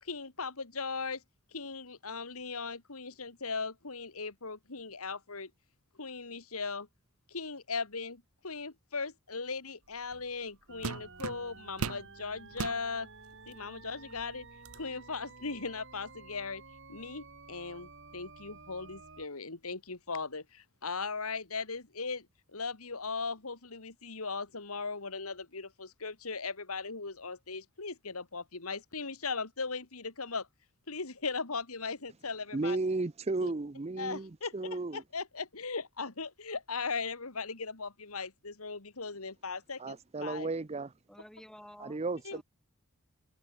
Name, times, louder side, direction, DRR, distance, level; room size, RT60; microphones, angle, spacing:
voice 1, 0.0-1.2 1.5-5.5 6.0-6.9 7.3-13.1 13.5-14.5 14.7-16.6 16.9-22.3 22.5-30.5 30.9-32.8 33.4-33.5 34.0-40.5 42.2-42.4, left 4 dB, 85° left, 2.4 m, -38 dB
sound 1, 10.1-10.3 10.8-12.1 12.5-12.8 13.5-13.6 14.1-14.8, right 4 dB, 85° right, 0.9 m, -38 dB
sound 2, 10.7-19.3, right 3 dB, 60° right, 4.6 m, -52 dB
voice 2, 32.5-35.0 39.8-40.9 41.8-42.4, right 3 dB, 30° right, 0.6 m, -34 dB
voice 3, 41.1-42.4, equal, 5° left, 1.8 m, -52 dB
open air
head